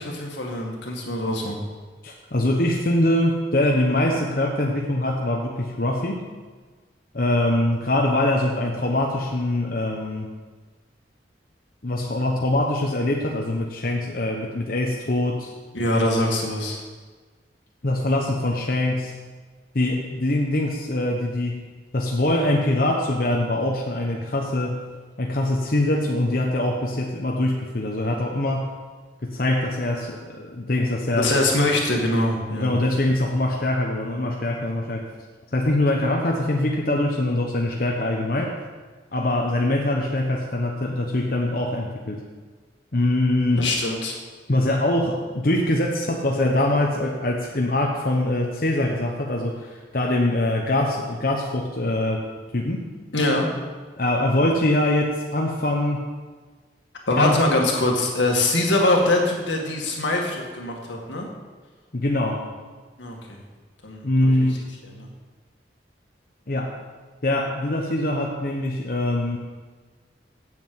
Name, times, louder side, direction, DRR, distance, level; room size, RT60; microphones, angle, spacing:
voice 1, 0.0-1.6 15.7-16.8 31.2-32.7 43.6-44.2 53.1-53.5 57.1-61.3 63.0-63.4 63.8-64.3 65.0-65.1, left 2 dB, 80° left, 0 dB, 2.0 m, -23 dB
voice 2, 2.0-6.2 7.1-10.3 11.8-15.5 17.8-19.1 19.7-21.6 21.9-24.8 25.2-28.7 29.2-31.3 32.5-35.1 35.5-38.6 39.1-42.2 42.9-43.7 44.5-52.3 52.5-52.9 54.0-56.0 57.2-57.4 61.9-62.4 64.0-64.7 66.5-66.7 67.2-69.4, left 1 dB, 50° left, 0 dB, 1.0 m, -23 dB
7.8 x 7.5 x 7.9 m, 1.4 s
head